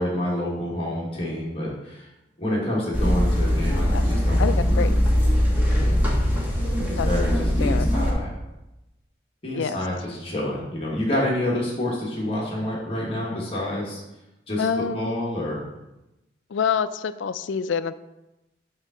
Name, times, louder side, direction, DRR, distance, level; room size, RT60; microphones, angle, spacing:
voice 1, 0.0-2.1 2.4-5.1 5.7-6.1 6.6-8.3 9.4-14.0 14.5-15.6, left 1 dB, 30° left, -4 dB, 1.5 m, -28 dB
sound 1, 2.9-8.1, equal, 10° right, 1.3 m, -21 dB
voice 2, 4.4-4.9 7.0-7.1 7.6-7.9 9.5-9.8 14.6-15.2 16.5-17.9, left 6 dB, 90° left, 13 dB, 0.4 m, -26 dB
6.9 x 3.7 x 5.6 m, 0.97 s
head